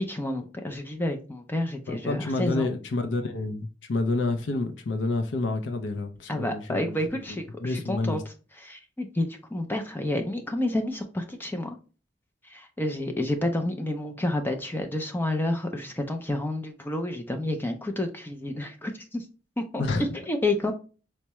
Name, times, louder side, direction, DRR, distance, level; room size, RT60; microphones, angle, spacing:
voice 1, 0.0-2.7 6.3-8.2 8.6-11.8 12.4-19.3 19.6-20.7, left 1 dB, 10° left, 0.4 m, -30 dB
voice 2, 1.9-7.0 7.3-8.2 19.8-20.1, left 2 dB, 75° left, 0.5 m, -29 dB
4.5 x 2.1 x 2.9 m
head